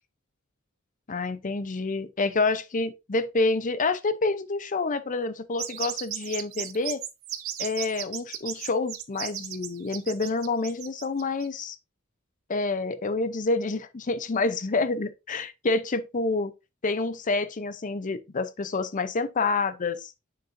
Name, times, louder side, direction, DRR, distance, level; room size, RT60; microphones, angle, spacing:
voice 1, 1.1-7.0 7.6-11.8 12.5-16.5 16.8-20.1, left 3 dB, 40° left, 0.6 m, -28 dB
sound 1, 5.6-11.6, right 11 dB, 75° right, 0.8 m, -35 dB
6.7 x 6.6 x 2.6 m
head